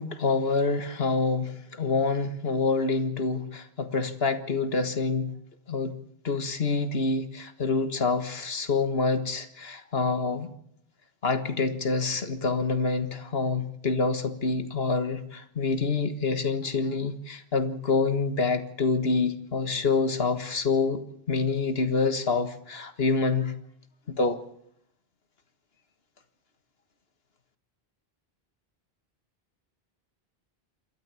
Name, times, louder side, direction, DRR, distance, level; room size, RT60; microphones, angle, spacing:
voice 1, 0.0-5.3 5.7-6.0 6.2-10.5 11.2-21.0 21.3-23.5 24.1-24.4, left 4 dB, 70° left, 10 dB, 1.9 m, -27 dB
27.0 x 13.0 x 8.4 m, 0.73 s
omnidirectional pair, 1.0 m